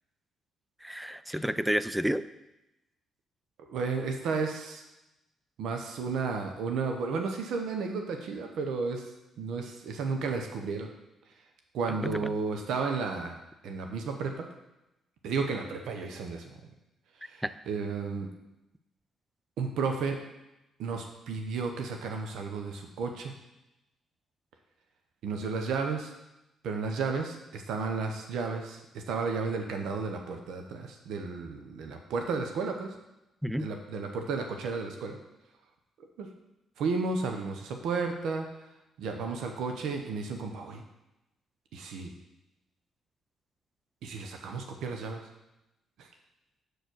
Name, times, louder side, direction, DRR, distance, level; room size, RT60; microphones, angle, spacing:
voice 1, 0.8-2.2 12.0-12.3 33.4-33.7, equal, 5° right, 14 dB, 0.4 m, -30 dB
voice 2, 3.6-4.8 5.6-9.0 9.4-10.9 11.7-13.4 13.6-14.4 15.2-16.5 17.2-18.3 19.6-20.2 20.8-23.3 25.2-26.1 26.6-28.8 29.1-32.9 33.6-35.2 36.2-36.3 36.8-38.4 39.0-40.8 41.7-42.1 44.0-45.2 46.0-46.1, right 4 dB, 80° right, 4 dB, 0.9 m, -33 dB
6.7 x 4.5 x 6.2 m, 0.93 s
cardioid pair, 90°, 0 cm